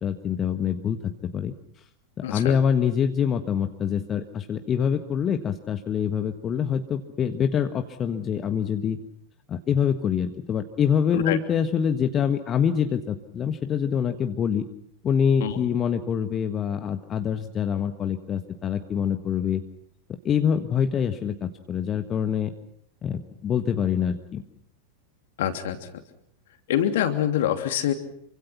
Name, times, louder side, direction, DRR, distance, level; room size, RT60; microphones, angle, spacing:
voice 1, 0.0-1.5 2.3-9.0 9.5-14.6 15.0-19.6 20.2-22.5 23.0-24.4, left 8 dB, 25° left, 7 dB, 1.5 m, -25 dB
voice 2, 2.2-2.6 11.1-11.4 15.4-15.6 25.4-26.0 26.7-27.9, left 10 dB, 55° left, 8 dB, 2.9 m, -25 dB
27.5 x 25.0 x 5.9 m, 0.68 s
figure-of-eight pair, 90°, 0 cm